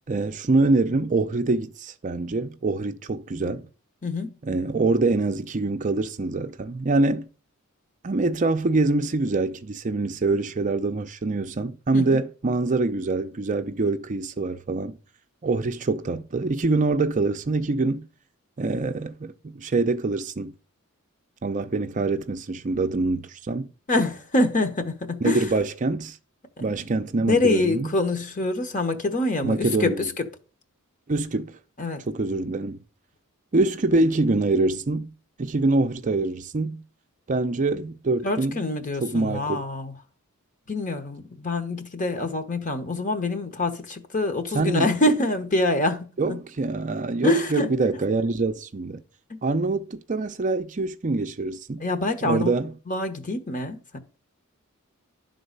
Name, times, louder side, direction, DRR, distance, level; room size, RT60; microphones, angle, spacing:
voice 1, 0.1-3.7 4.4-7.3 8.0-15.0 15.4-18.1 18.6-20.5 21.4-23.7 25.2-26.2 26.6-27.9 29.4-30.1 31.1-31.6 32.1-32.8 33.5-35.1 35.4-36.8 37.3-38.6 39.0-39.6 44.5-44.9 46.2-49.0 49.4-51.8 52.2-52.7, right 3 dB, 35° right, 0.5 m, -25 dB
voice 2, 4.0-4.3 11.9-12.2 23.9-25.5 26.6-26.8 27.3-30.3 31.8-32.0 38.2-39.9 40.7-46.4 47.2-47.7 49.3-49.4 51.8-52.5 52.9-54.0, left 2 dB, 35° left, 1.2 m, -25 dB
11.0 x 3.9 x 6.7 m
head